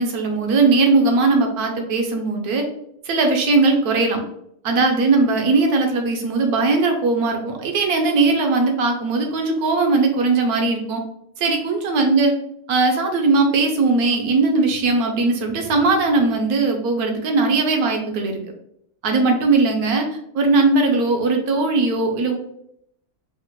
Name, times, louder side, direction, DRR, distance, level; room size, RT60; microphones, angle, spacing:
voice 1, 0.0-2.7 3.0-4.2 4.6-11.0 11.4-12.3 12.7-18.4 19.0-20.1 20.3-22.4, right 3 dB, 70° right, 3 dB, 1.0 m, -19 dB
4.1 x 2.0 x 3.0 m, 0.72 s
omnidirectional pair, 1.9 m